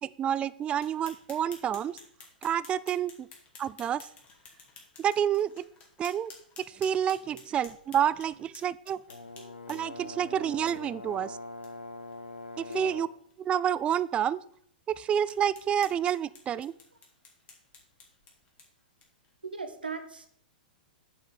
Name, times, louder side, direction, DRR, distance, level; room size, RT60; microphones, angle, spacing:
voice 1, 0.0-2.0 2.4-3.3 3.6-4.1 5.0-5.7 6.0-6.3 6.7-9.0 9.7-11.4 12.6-13.1 13.4-14.4 14.9-16.7, right 9 dB, 20° right, 19 dB, 0.3 m, -29 dB
sound 1, 0.7-10.0 10.7-10.8 11.1-11.2 11.6-11.7 12.1-12.2 12.6-12.8 13.3-13.4 13.9-14.0 14.5-14.6 15.3-19.3, left 4 dB, 30° left, 2.5 m, -53 dB
Brass instrument, 9.1-13.2, left 2 dB, 85° left, 0.6 m, -43 dB
voice 2, 19.4-20.3, right 4 dB, 90° right, 8 dB, 1.3 m, -39 dB
8.4 x 4.9 x 7.1 m, 0.62 s
hypercardioid pair, 105°, 5 cm